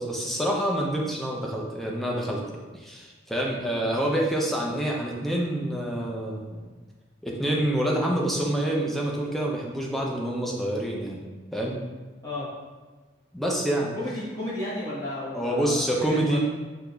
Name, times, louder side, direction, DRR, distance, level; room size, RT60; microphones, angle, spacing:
voice 1, 0.0-6.6 7.2-11.2 11.5-11.8 13.3-13.9 15.3-16.4, right 1 dB, ahead, -2 dB, 0.4 m, -27 dB
voice 2, 13.9-15.8 16.1-16.4, left 1 dB, 20° left, -9 dB, 1.0 m, -33 dB
3.8 x 2.8 x 2.2 m, 1.3 s
head